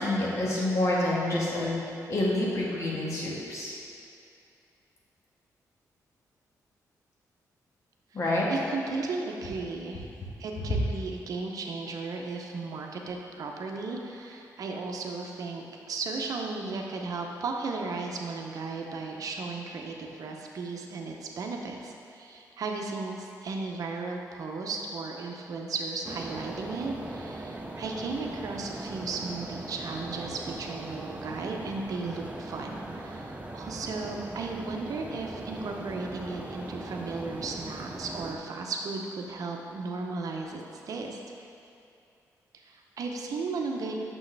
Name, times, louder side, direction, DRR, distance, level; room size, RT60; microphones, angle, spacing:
voice 1, 0.0-1.8 2.1-3.7 8.1-8.5, left 1 dB, 50° left, -5 dB, 1.5 m, -27 dB
voice 2, 8.5-10.1 10.4-41.2 42.6-44.0, right 3 dB, 60° right, 1 dB, 0.7 m, -35 dB
sound 1, 26.0-38.4, right 2 dB, 20° right, 0.6 m, -40 dB
6.2 x 6.2 x 3.4 m, 2.6 s
cardioid pair, 100°, 7 cm